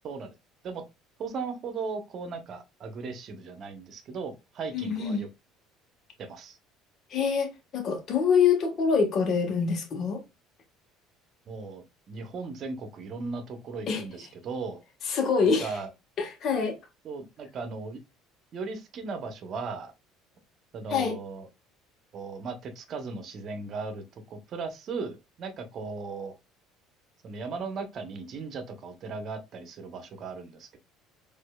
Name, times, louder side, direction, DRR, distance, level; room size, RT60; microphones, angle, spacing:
voice 1, 0.0-0.3 0.6-0.8 1.2-5.3 6.2-6.6 11.5-14.8 15.6-15.9 17.0-18.0 18.5-19.9 20.7-21.5 22.1-26.3 27.2-30.8, right 4 dB, 50° right, 0.8 m, -37 dB
voice 2, 4.7-5.2 7.1-10.2 13.9-14.0 15.0-15.7 16.2-16.8 20.9-21.1, left 6 dB, 50° left, 1.2 m, -25 dB
4.2 x 2.6 x 2.2 m
supercardioid pair, 85°, 0 cm